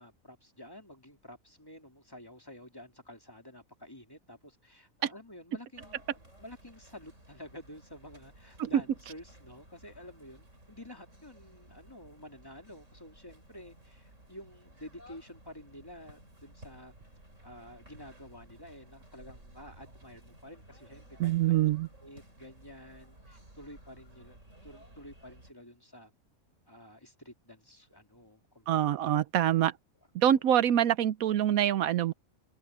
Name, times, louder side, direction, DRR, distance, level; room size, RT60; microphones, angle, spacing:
voice 1, 0.0-16.9 17.4-21.5 22.0-24.4 24.6-26.1 26.7-28.7 30.2-30.4, left 1 dB, 15° left, 2.9 m, -50 dB
sound 1, 5.7-25.5, right 1 dB, 60° right, 6.0 m, -56 dB
voice 2, 21.2-21.9 28.7-29.7 30.1-32.1, right 11 dB, 80° right, 1.1 m, -25 dB
open air
omnidirectional pair, 1.5 m